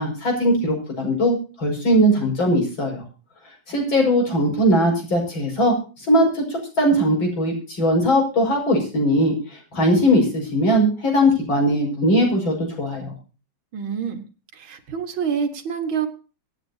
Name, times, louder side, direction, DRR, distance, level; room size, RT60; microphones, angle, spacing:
voice 1, 0.0-3.0 3.7-13.1, equal, 65° left, 1 dB, 6.4 m, -20 dB
voice 2, 13.7-14.2 14.5-16.1, right 7 dB, 70° right, 7 dB, 2.3 m, -26 dB
26.0 x 9.1 x 2.8 m, 0.35 s
omnidirectional pair, 2.3 m